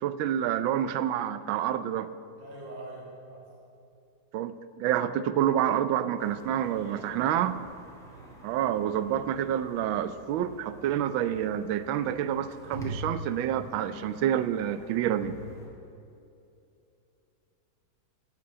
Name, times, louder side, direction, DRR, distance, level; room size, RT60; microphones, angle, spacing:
voice 1, 0.0-2.1 4.3-7.6 8.4-15.4, right 10 dB, 85° right, 13 dB, 1.4 m, -28 dB
voice 2, 2.4-3.4 6.6-7.2 8.1-8.4, right 1 dB, 70° right, -4 dB, 3.0 m, -45 dB
sound 1, 6.2-15.7, right 1 dB, ahead, 2.3 m, -45 dB
12.5 x 6.1 x 9.5 m, 2.7 s
omnidirectional pair, 2.1 m